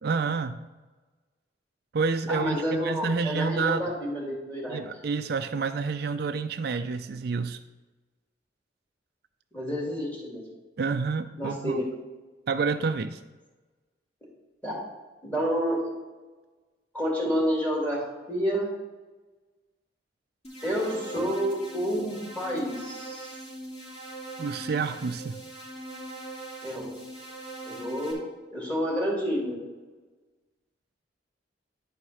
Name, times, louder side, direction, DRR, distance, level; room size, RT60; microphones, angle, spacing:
voice 1, 0.0-0.6 1.9-3.9 4.7-7.6 10.8-11.8 12.5-13.2 24.4-25.4, right 4 dB, 60° right, 9 dB, 0.4 m, -29 dB
voice 2, 2.3-4.8 9.5-10.4 11.4-11.8 14.6-14.8 15.2-15.9 16.9-18.0 18.3-18.7 20.6-23.3 26.6-26.9 27.7-28.2 28.5-29.5, equal, 10° left, -4 dB, 2.6 m, -29 dB
sound 1, 20.4-28.1, right 2 dB, 35° left, 2.8 m, -41 dB
10.0 x 4.8 x 5.6 m, 1.2 s
head